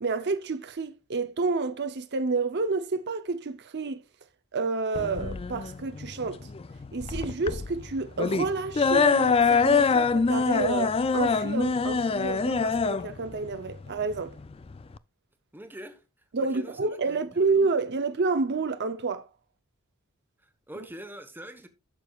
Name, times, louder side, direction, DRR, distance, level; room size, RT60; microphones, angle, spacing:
voice 1, 0.0-4.0 4.5-6.5 6.9-14.3 16.3-19.3 20.7-20.9, right 4 dB, 50° right, 0.7 m, -29 dB
sound 1, 4.9-15.0, left 5 dB, 25° left, 0.3 m, -25 dB
voice 2, 15.5-16.0 16.4-17.5 20.4-21.7, equal, 10° right, 1.1 m, -44 dB
12.5 x 6.8 x 2.4 m
head